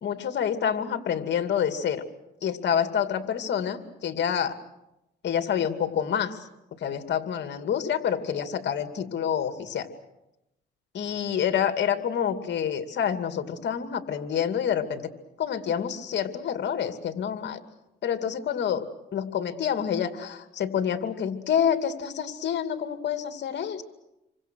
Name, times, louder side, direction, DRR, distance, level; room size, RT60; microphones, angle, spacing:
voice 1, 0.0-2.0 2.4-4.5 5.2-6.5 6.8-9.9 10.9-15.0 15.4-17.6 18.0-18.9 19.1-23.8, left 8 dB, 60° left, 8 dB, 2.5 m, -27 dB
28.5 x 24.5 x 6.4 m, 0.91 s
cardioid pair, 90°, 20 cm